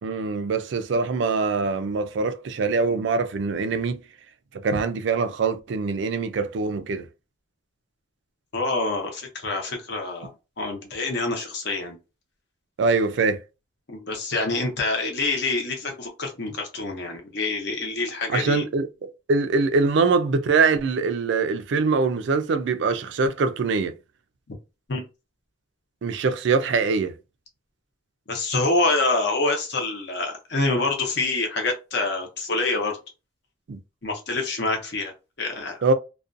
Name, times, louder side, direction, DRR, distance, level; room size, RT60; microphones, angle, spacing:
voice 1, 0.0-4.0 4.6-7.1 12.8-13.4 18.3-18.9 19.3-23.9 26.0-27.1 33.7-33.8 35.8-35.9, right 4 dB, 60° right, 0.3 m, -23 dB
voice 2, 8.5-10.3 10.6-12.0 13.9-18.6 24.9-25.0 28.3-33.0 34.0-35.1 35.4-35.8, left 3 dB, 55° left, 0.8 m, -26 dB
2.4 x 2.2 x 2.5 m
head